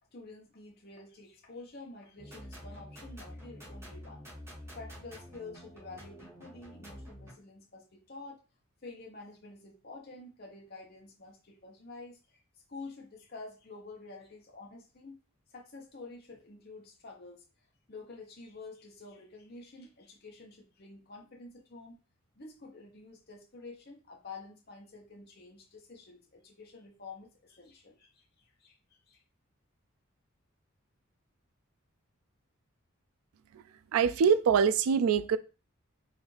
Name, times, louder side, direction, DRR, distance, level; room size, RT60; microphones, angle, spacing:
voice 1, 0.1-4.3 4.7-8.4 8.8-12.4 12.7-15.2 15.5-17.4 17.9-22.0 22.4-29.2, left 3 dB, 45° left, 0.9 m, -49 dB
sound 1, 2.2-7.3, equal, 10° right, 1.1 m, -48 dB
voice 2, 33.9-35.4, right 6 dB, 80° right, 0.3 m, -24 dB
4.0 x 2.5 x 3.2 m
head